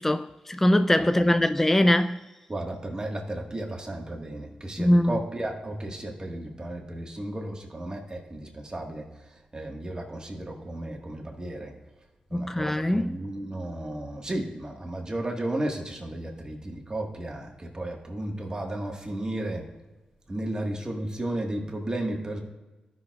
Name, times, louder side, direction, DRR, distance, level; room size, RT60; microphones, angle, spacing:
voice 1, 0.0-2.2 4.8-5.2 12.3-13.1, left 1 dB, 10° left, 0.3 m, -22 dB
voice 2, 1.0-1.4 2.5-9.1 9.5-11.7 12.3-19.7 20.3-22.4, right 1 dB, 30° right, 1.6 m, -34 dB
13.5 x 6.1 x 2.4 m
cardioid pair, 65°, 3 cm